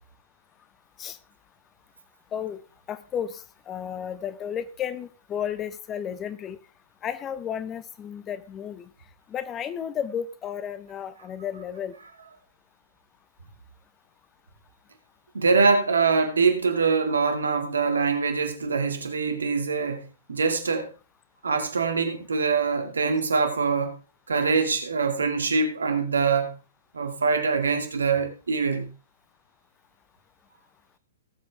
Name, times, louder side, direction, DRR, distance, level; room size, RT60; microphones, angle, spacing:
voice 1, 2.3-2.6 2.9-6.6 7.0-8.9 9.3-11.9, left 8 dB, 25° left, 1.0 m, -33 dB
voice 2, 15.3-20.9 21.4-23.9 24.3-26.6 26.9-28.9, right 4 dB, 75° right, 2.3 m, -24 dB
18.0 x 8.0 x 3.4 m
figure-of-eight pair, 115°, 0 cm